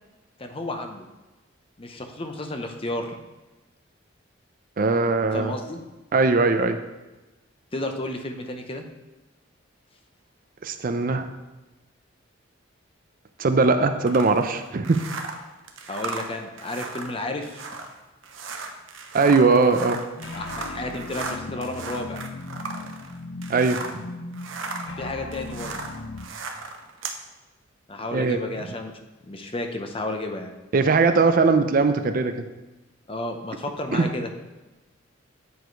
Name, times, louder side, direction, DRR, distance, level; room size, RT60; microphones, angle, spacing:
voice 1, 0.4-1.1 1.8-3.1 5.3-5.8 7.7-8.9 15.9-17.7 20.3-22.2 25.0-25.7 27.9-28.9 29.2-30.5 33.1-34.3, left 1 dB, 30° left, 5 dB, 0.7 m, -32 dB
voice 2, 4.8-5.5 6.1-6.8 10.6-11.3 13.4-15.0 19.1-20.0 23.5-23.8 28.1-28.4 30.7-32.3 33.9-34.1, right 4 dB, 45° right, 8 dB, 0.5 m, -20 dB
sound 1, 14.1-24.0 24.3-27.2, right 4 dB, 85° right, 0.8 m, -36 dB
sound 2, 20.2-26.3, left 2 dB, 80° left, 0.7 m, -37 dB
8.3 x 4.8 x 4.5 m, 1.1 s
head